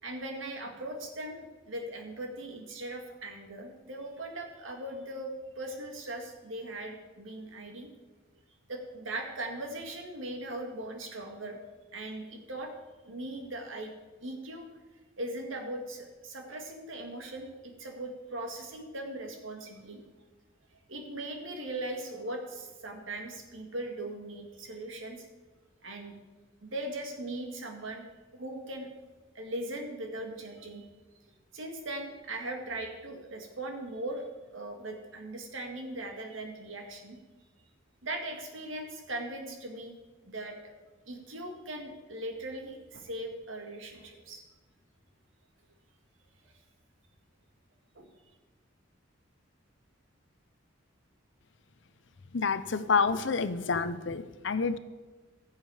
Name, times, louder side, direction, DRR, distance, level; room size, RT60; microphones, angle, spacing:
voice 1, 0.0-7.9 8.7-11.6 11.9-12.7 13.1-13.9 14.2-14.7 15.2-20.0 20.9-25.3 25.8-26.1 26.6-28.0 28.3-28.9 29.4-30.9 31.5-34.2 34.5-37.2 38.0-40.0 40.2-40.6 41.1-44.4 48.0-48.1, right 1 dB, 75° right, 3 dB, 1.9 m, -39 dB
voice 2, 52.3-54.8, left 5 dB, 60° left, 13 dB, 0.6 m, -28 dB
15.5 x 7.3 x 4.9 m, 1.3 s
head